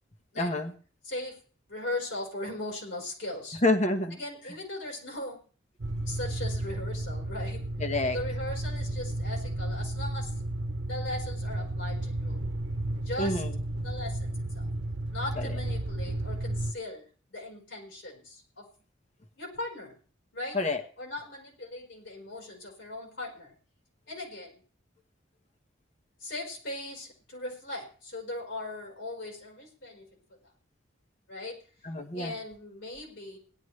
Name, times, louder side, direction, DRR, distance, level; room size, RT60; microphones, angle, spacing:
voice 1, 0.4-0.7 3.6-4.2 7.8-8.2 13.2-13.5 15.4-15.5 20.5-20.8 31.8-32.4, left 2 dB, 35° left, 6 dB, 1.3 m, -27 dB
voice 2, 1.0-1.4 1.7-3.6 4.1-5.4 6.1-7.7 8.1-10.3 10.9-12.5 13.0-13.4 13.8-14.7 15.1-17.0 17.3-18.7 19.4-19.9 20.3-20.6 21.0-23.5 24.1-24.6 26.2-30.1 31.3-31.6 32.1-33.4, left 2 dB, 70° left, 0 dB, 4.5 m, -38 dB
sound 1, 5.8-16.7, right 1 dB, 75° right, 0.9 m, -33 dB
17.5 x 11.5 x 3.3 m, 0.41 s
head